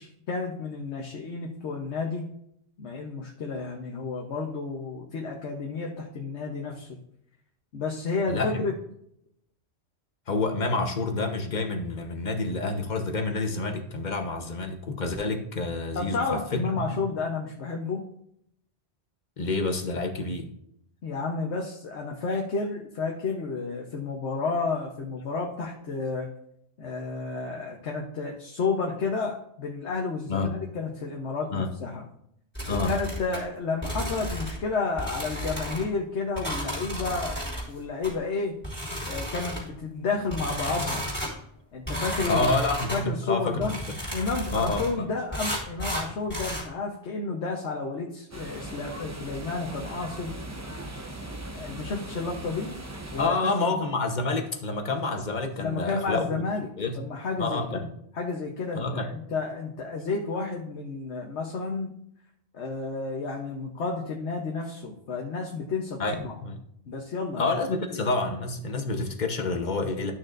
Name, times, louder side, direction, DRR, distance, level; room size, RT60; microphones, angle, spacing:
voice 1, 0.0-2.3 2.8-7.0 7.7-8.7 15.9-18.0 21.0-26.3 26.8-32.0 32.7-38.6 39.0-41.0 41.7-42.5 42.9-43.7 44.1-50.4 51.5-52.7 53.1-53.8 55.6-56.7 56.9-57.9 58.1-61.9 62.5-66.3 66.9-67.5, left 4 dB, 90° left, 0 dB, 1.3 m, -31 dB
voice 2, 8.3-8.6 10.3-16.8 19.4-20.5 30.3-30.5 31.5-31.7 32.7-32.9 42.3-43.8 44.5-45.0 53.2-56.2 56.8-57.0 57.4-57.8 58.7-59.1 66.0-66.6 67.4-70.1, left 3 dB, 45° left, 5 dB, 1.0 m, -28 dB
sound 1, 32.5-33.4 33.8-34.6 35.0-35.8 36.4-37.6 38.0-38.1 38.6-39.7 40.3-41.3 41.9-43.0 43.6-44.9 45.3-46.6, equal, 10° left, 3.8 m, -33 dB
sound 2, 48.3-53.3, right 1 dB, 15° right, 0.8 m, -39 dB
12.5 x 6.5 x 2.5 m, 0.72 s
omnidirectional pair, 1.1 m